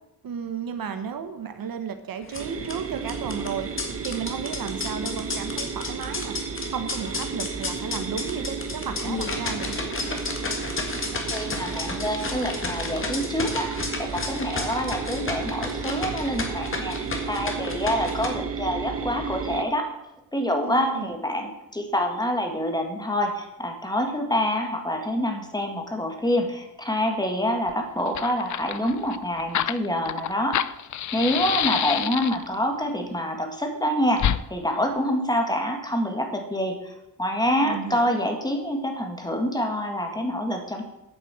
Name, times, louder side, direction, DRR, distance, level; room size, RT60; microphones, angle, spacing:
voice 1, 0.2-3.7 4.0-6.4 6.7-9.8 20.6-21.1 37.5-38.2, right 7 dB, 65° right, 9 dB, 1.1 m, -33 dB
sound 1, 2.2-18.3, left 3 dB, 35° left, 1.8 m, -33 dB
sound 2, 2.4-19.6, right 5 dB, 35° right, 1.0 m, -33 dB
voice 2, 11.1-19.8 20.3-30.6 31.1-34.2 34.5-40.8, equal, 10° left, 4 dB, 1.7 m, -26 dB
Fire, 27.7-27.8 28.0-32.6 34.2-34.4, left 10 dB, 50° left, 0.5 m, -27 dB
9.2 x 7.5 x 7.5 m, 0.92 s
wide cardioid pair, 160°, 37 cm